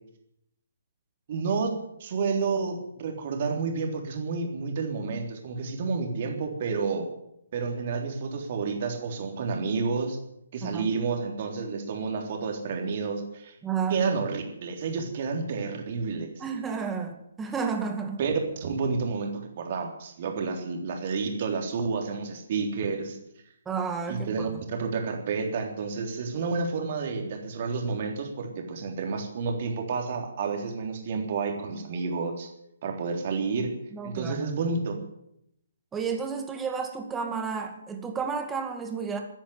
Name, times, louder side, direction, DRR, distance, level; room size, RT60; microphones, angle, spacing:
voice 1, 1.3-1.7 2.0-7.1 7.5-10.2 10.5-13.6 13.9-16.3 18.2-23.2 24.1-32.5 32.8-33.7 34.0-35.0, right 4 dB, 40° right, 3 dB, 3.6 m, -30 dB
voice 2, 10.6-10.9 13.6-14.0 16.4-18.2 23.7-24.6 33.9-34.5 35.9-39.2, right 6 dB, 10° right, 4 dB, 2.1 m, -31 dB
15.0 x 10.0 x 9.6 m, 0.78 s
figure-of-eight pair, 135°, 0 cm